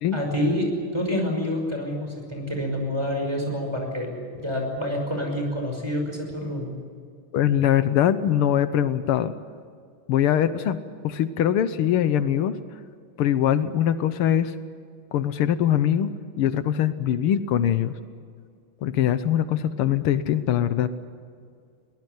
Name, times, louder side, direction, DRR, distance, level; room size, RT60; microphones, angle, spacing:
voice 1, 0.1-4.1 4.4-6.7, left 1 dB, 10° right, 2 dB, 5.6 m, -27 dB
voice 2, 7.3-9.3 10.1-12.6 13.2-14.5 15.1-16.1 16.4-18.0 18.8-20.9, left 10 dB, 85° left, 12 dB, 1.8 m, -22 dB
22.0 x 20.0 x 9.4 m, 2.2 s
omnidirectional pair, 2.4 m